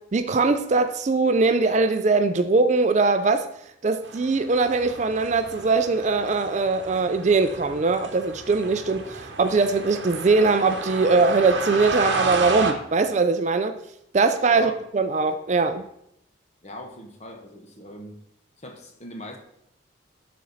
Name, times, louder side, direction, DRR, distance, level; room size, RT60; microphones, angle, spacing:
voice 1, 0.1-3.5 3.8-13.8 14.1-15.8, right 3 dB, 35° right, 9 dB, 0.4 m, -21 dB
sound 1, 4.0-12.7, right 3 dB, 65° right, 1.0 m, -32 dB
voice 2, 16.6-18.2 18.6-19.4, left 1 dB, 35° left, 2 dB, 1.1 m, -40 dB
12.0 x 4.3 x 4.0 m, 0.77 s
head